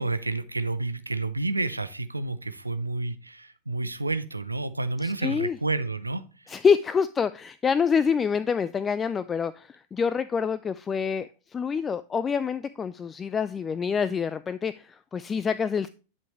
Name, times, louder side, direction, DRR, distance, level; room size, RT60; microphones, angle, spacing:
voice 1, 0.0-6.5, right 2 dB, 85° right, 0.8 m, -30 dB
voice 2, 5.0-5.6 6.5-15.9, left 6 dB, 20° left, 0.4 m, -26 dB
11.0 x 6.1 x 3.1 m
figure-of-eight pair, 90°, 0 cm